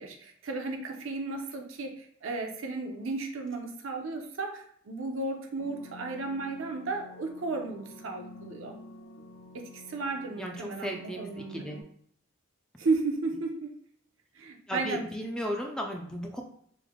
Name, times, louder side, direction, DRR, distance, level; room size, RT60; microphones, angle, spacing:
voice 1, 0.0-8.7 9.5-11.8 12.8-13.8 14.3-15.0, right 3 dB, 75° right, 3 dB, 0.6 m, -34 dB
sound 1, 5.6-11.8, left 2 dB, 85° left, 0.5 m, -50 dB
voice 2, 10.4-11.8 14.7-16.4, equal, 5° left, 1 dB, 0.3 m, -35 dB
3.2 x 2.1 x 3.6 m, 0.66 s
head